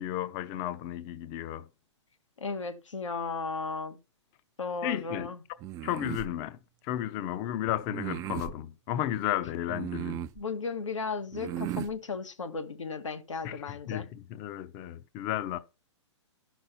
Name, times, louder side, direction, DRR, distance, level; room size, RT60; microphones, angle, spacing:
voice 1, 0.0-1.7 4.8-5.3 5.8-10.2 13.4-15.6, left 12 dB, 35° left, 0.7 m, -33 dB
voice 2, 2.4-4.0 4.6-5.4 10.3-14.1, left 4 dB, 90° left, 1.5 m, -35 dB
sound 1, 5.6-6.3 7.9-8.5 9.7-10.4 11.3-11.9, right 12 dB, 20° right, 0.4 m, -36 dB
12.5 x 6.0 x 4.2 m
hypercardioid pair, 130°, 16 cm